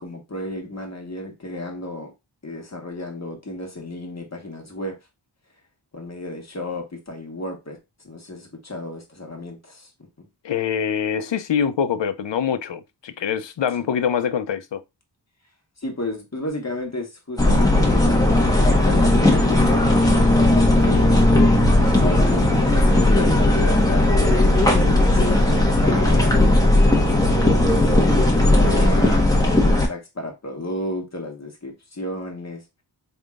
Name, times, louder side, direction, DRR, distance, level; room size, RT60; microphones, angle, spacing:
voice 1, 0.0-2.1 2.4-5.0 5.9-7.8 8.0-9.9 13.8-13.9 15.8-19.9 20.1-21.3 21.7-26.5 26.9-32.6, left 1 dB, 35° left, 1.4 m, -33 dB
voice 2, 10.4-14.8, left 7 dB, 75° left, 0.6 m, -24 dB
sound 1, 17.4-29.9, left 1 dB, 10° left, 1.2 m, -17 dB
4.4 x 3.5 x 2.4 m
wide cardioid pair, 65°, 44 cm